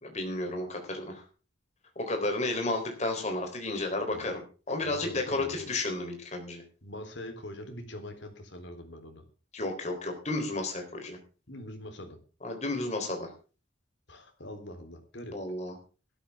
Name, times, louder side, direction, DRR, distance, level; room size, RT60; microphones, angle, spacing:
voice 1, 0.0-1.2 2.0-4.4 4.7-6.6 9.5-11.2 12.4-13.3 15.3-15.7, left 2 dB, 35° left, 4 dB, 3.9 m, -32 dB
voice 2, 4.8-5.7 6.8-9.2 11.5-12.2 14.1-15.4, left 1 dB, 70° left, 4 dB, 3.7 m, -43 dB
17.0 x 13.0 x 3.7 m, 0.35 s
head